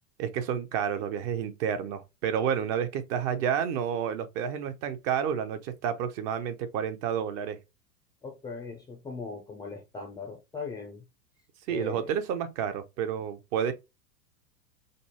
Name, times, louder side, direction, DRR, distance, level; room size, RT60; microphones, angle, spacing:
voice 1, 0.2-7.6 11.7-13.7, right 8 dB, 45° right, 0.8 m, -30 dB
voice 2, 8.2-11.0 11.7-12.1, left 4 dB, 10° left, 0.4 m, -39 dB
5.2 x 2.1 x 2.9 m
hypercardioid pair, 115°, 50 cm